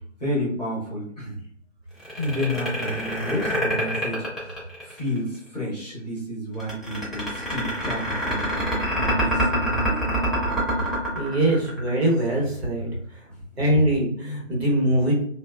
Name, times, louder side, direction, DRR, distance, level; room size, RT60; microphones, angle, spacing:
voice 1, 0.2-1.4 2.1-4.5 4.8-8.5 8.9-10.0 11.6-11.8 13.3-13.4, equal, 35° left, -6 dB, 0.8 m, -30 dB
sound 1, 2.0-5.2 6.6-12.1, equal, ahead, 0.3 m, -25 dB
voice 2, 11.1-12.9 13.6-15.1, right 1 dB, 55° right, -3 dB, 1.0 m, -22 dB
2.7 x 2.0 x 2.2 m, 0.67 s
figure-of-eight pair, 165°, 38 cm